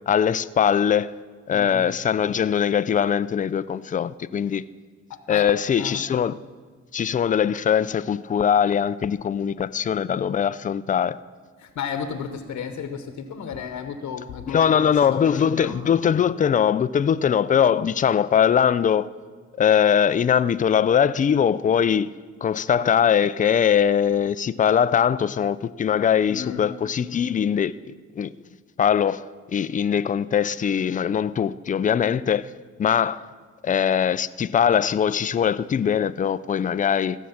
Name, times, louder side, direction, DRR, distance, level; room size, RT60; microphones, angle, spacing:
voice 1, 0.1-1.1 1.5-4.6 5.3-6.4 6.9-11.2 14.5-19.1 19.6-22.1 22.4-28.3 28.8-29.2 29.5-32.5 32.8-33.2 33.6-37.2, left 8 dB, 25° left, 0.4 m, -21 dB
voice 2, 5.1-5.5 5.8-6.0 11.6-15.8 26.3-26.7, left 7 dB, 70° left, 1.0 m, -33 dB
16.0 x 6.4 x 7.1 m
cardioid pair, 90°, 30 cm